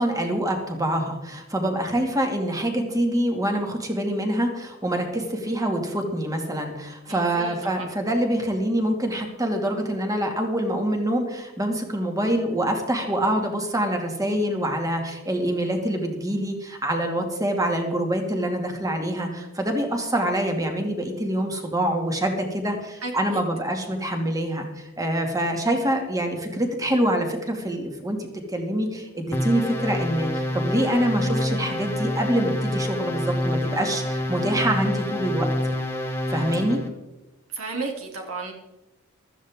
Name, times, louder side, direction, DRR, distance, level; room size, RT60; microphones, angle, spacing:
voice 1, 0.0-35.5 36.3-36.8, right 1 dB, 15° right, 3 dB, 2.2 m, -25 dB
voice 2, 7.1-7.9 23.0-23.4 37.5-38.5, right 3 dB, 80° right, 1 dB, 2.7 m, -33 dB
sound 1, 29.3-36.9, left 1 dB, 10° left, 1.7 m, -27 dB
15.5 x 13.0 x 3.6 m, 0.99 s
head